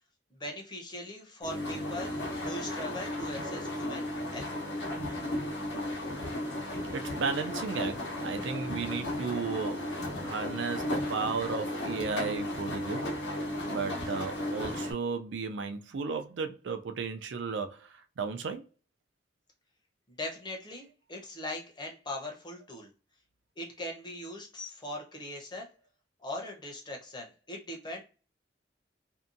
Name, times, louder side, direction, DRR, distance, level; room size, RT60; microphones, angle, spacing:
voice 1, 0.3-2.1 2.5-4.0 4.3-4.5 20.2-22.9 23.6-25.7 26.2-28.0, left 1 dB, 25° left, 0.7 m, -40 dB
sound 1, 1.4-14.9, left 1 dB, 80° left, 0.9 m, -35 dB
voice 2, 6.9-9.8 10.2-13.0 13.6-17.9 18.2-18.6, right 5 dB, 85° right, 0.4 m, -34 dB
2.7 x 2.2 x 2.5 m
head